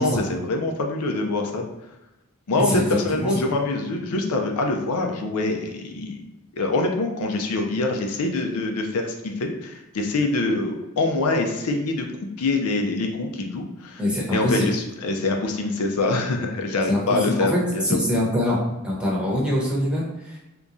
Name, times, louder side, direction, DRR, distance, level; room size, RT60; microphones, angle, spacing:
voice 1, 0.0-1.6 2.5-6.2 6.5-12.1 12.4-14.0 14.3-17.8, left 2 dB, 75° left, 3 dB, 0.5 m, -25 dB
voice 2, 2.5-3.0 3.2-3.3 14.0-14.7 16.9-17.2 17.5-20.4, left 1 dB, 5° right, -6 dB, 0.9 m, -24 dB
3.5 x 2.9 x 2.6 m, 0.97 s
head